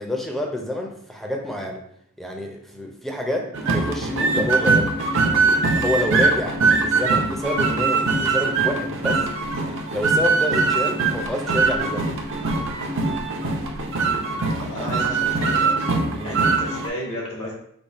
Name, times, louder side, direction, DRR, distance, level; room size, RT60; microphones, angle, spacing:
voice 1, 0.0-1.8 2.2-4.9 5.3-9.3 9.9-12.1 16.1-16.4, left 1 dB, ahead, 1 dB, 0.6 m, -28 dB
sound 1, 3.5-16.9, right 4 dB, 60° right, 0.7 m, -22 dB
voice 2, 14.7-15.9 16.2-17.5, left 1 dB, 70° left, -3 dB, 1.4 m, -33 dB
5.3 x 2.3 x 4.0 m, 0.71 s
head